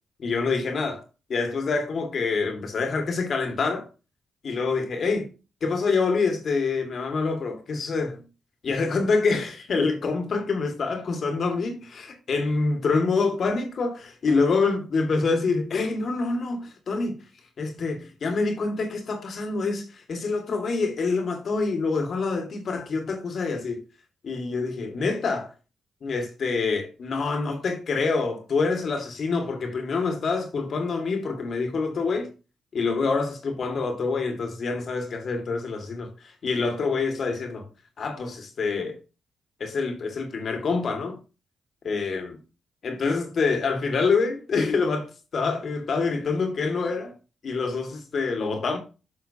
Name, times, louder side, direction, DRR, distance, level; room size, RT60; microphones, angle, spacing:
voice 1, 0.2-1.0 1.3-3.9 4.4-5.3 5.6-8.2 8.6-17.2 17.6-23.8 24.2-25.5 26.0-32.3 32.7-37.7 38.0-39.0 39.6-41.2 41.8-42.4 42.8-47.1 47.4-48.8, left 4 dB, 60° left, 2.0 m, -26 dB
10.0 x 5.6 x 2.8 m
supercardioid pair, 55°, 0 cm